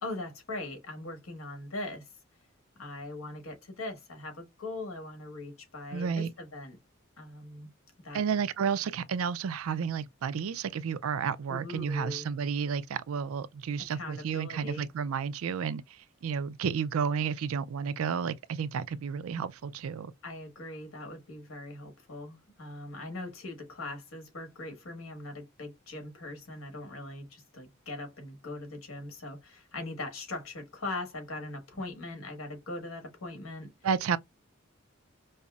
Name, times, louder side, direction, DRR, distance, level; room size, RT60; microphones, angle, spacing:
voice 1, 0.0-2.1 2.8-6.8 7.2-7.7 8.0-8.2 11.5-12.3 13.9-14.9 20.2-33.7, left 2 dB, 85° left, 1.4 m, -40 dB
voice 2, 5.9-6.3 8.1-20.1 33.8-34.2, right 6 dB, 80° right, 0.4 m, -31 dB
5.3 x 2.0 x 2.3 m
head